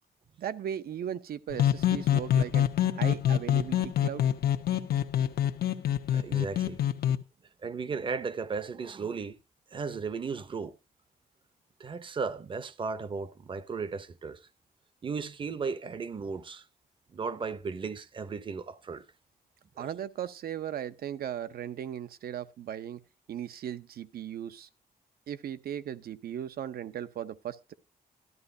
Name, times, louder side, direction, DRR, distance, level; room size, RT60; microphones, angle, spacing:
voice 1, 0.4-2.7 3.0-4.2 19.8-23.0 23.3-24.7 25.3-27.7, right 10 dB, 75° right, 0.7 m, -37 dB
sound 1, 1.5-7.2, left 10 dB, 90° left, 1.0 m, -26 dB
voice 2, 6.1-6.8 7.6-9.3 9.7-10.8 11.8-14.5 15.0-16.6 17.1-19.0 19.8-19.9, right 5 dB, 30° right, 0.7 m, -35 dB
13.5 x 12.5 x 2.7 m
wide cardioid pair, 175°, 16 cm